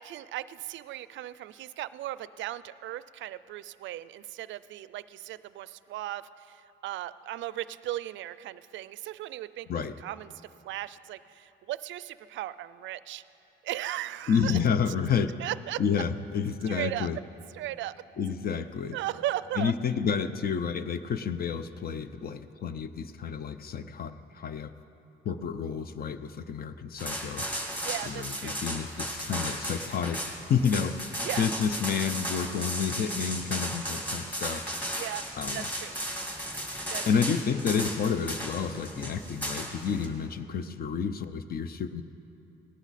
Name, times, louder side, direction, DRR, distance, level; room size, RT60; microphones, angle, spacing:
voice 1, 0.0-13.2 13.6-14.6 15.4-15.8 16.7-17.1 17.5-18.0 18.9-19.7 27.8-28.6 31.2-31.5 35.0-35.3 35.5-35.9 36.9-37.4, right 14 dB, 75° right, 17 dB, 0.4 m, -37 dB
voice 2, 14.3-15.3 15.8-17.2 18.2-19.0 19.6-24.7 25.2-27.4 28.1-34.7 35.4-35.6 37.1-42.0, left 6 dB, 50° left, 11 dB, 0.6 m, -30 dB
sound 1, 27.0-40.1, equal, 10° left, 2.0 m, -35 dB
18.0 x 12.0 x 4.1 m, 2.8 s
cardioid pair, 90°, 20 cm